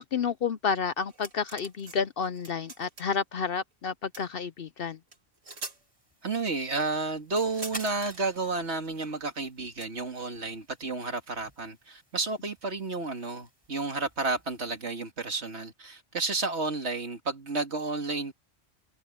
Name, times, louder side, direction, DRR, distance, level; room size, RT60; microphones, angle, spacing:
voice 1, 0.0-5.0, left 6 dB, 60° left, 0.7 m, -30 dB
sound 1, 1.1-2.0 2.2-3.2 4.1-4.3 5.1-5.2 5.4-5.8 7.3-8.2 9.8-9.9, right 3 dB, 75° right, 3.3 m, -43 dB
sound 2, 5.4-14.9, equal, 20° right, 6.4 m, -51 dB
voice 2, 6.2-18.3, right 3 dB, 60° right, 2.4 m, -31 dB
omnidirectional pair, 1.3 m